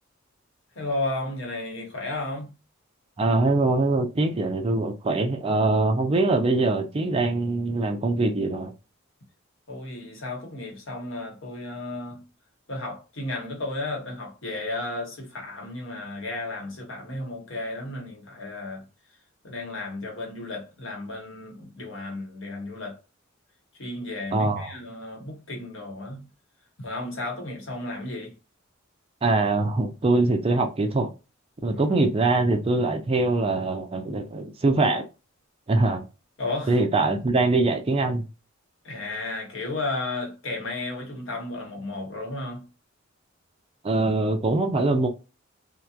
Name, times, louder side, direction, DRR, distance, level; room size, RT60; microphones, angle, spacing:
voice 1, 0.7-2.5 9.7-12.3 12.7-18.8 19.4-23.0 23.8-26.3 26.8-28.3 31.7-32.0 36.4-36.8 38.8-42.7, left 2 dB, 65° left, 1.1 m, -33 dB
voice 2, 3.2-8.7 24.3-24.7 29.2-31.1 31.6-35.1 35.7-36.0 36.7-38.2 43.8-45.1, right 2 dB, 30° right, 0.4 m, -23 dB
2.8 x 2.1 x 2.3 m
head